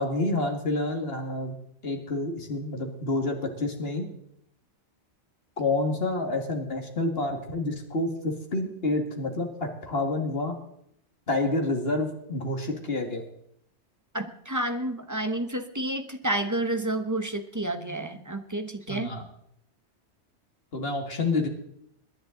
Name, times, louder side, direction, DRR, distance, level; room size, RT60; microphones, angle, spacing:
voice 1, 0.0-1.5 1.8-4.1 5.6-10.6 11.3-13.2 18.9-19.2 20.7-21.5, left 2 dB, 60° left, 3 dB, 2.3 m, -28 dB
voice 2, 14.1-19.1, right 1 dB, 15° right, 7 dB, 0.9 m, -30 dB
22.0 x 10.5 x 3.9 m, 0.72 s
omnidirectional pair, 1.1 m